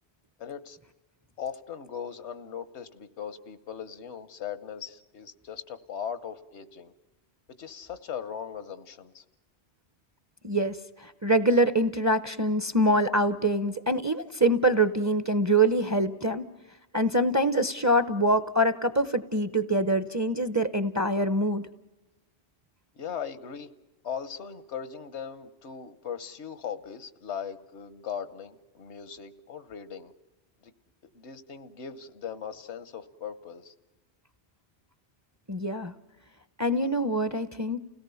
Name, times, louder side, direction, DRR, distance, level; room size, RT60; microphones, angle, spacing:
voice 1, 0.4-0.8 1.4-6.9 7.6-9.2 22.9-23.7 24.0-30.1 30.6-30.7 31.1-33.7, left 7 dB, 85° left, 14 dB, 1.3 m, -39 dB
voice 2, 10.4-16.5 16.9-21.6 35.5-35.9 36.6-37.8, right 1 dB, 20° right, 13 dB, 0.6 m, -25 dB
29.5 x 17.5 x 7.0 m, 1.1 s
omnidirectional pair, 1.1 m